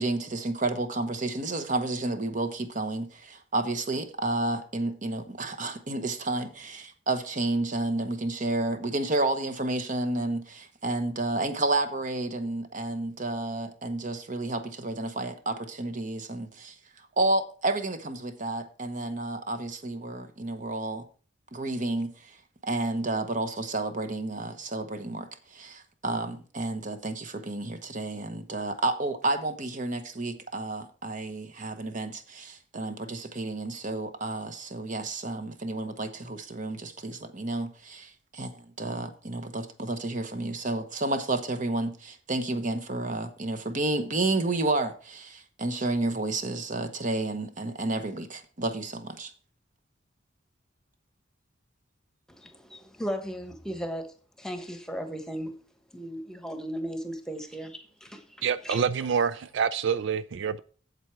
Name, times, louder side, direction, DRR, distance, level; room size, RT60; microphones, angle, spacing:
voice 1, 0.0-16.7 17.2-21.0 21.5-22.4 22.6-49.3, right 2 dB, 40° right, 1.1 m, -31 dB
voice 2, 52.3-54.1 54.4-55.5 55.9-58.4 58.6-58.8, equal, 5° left, 1.2 m, -36 dB
voice 3, 58.4-60.6, right 6 dB, 70° right, 0.4 m, -27 dB
8.1 x 7.7 x 4.6 m
head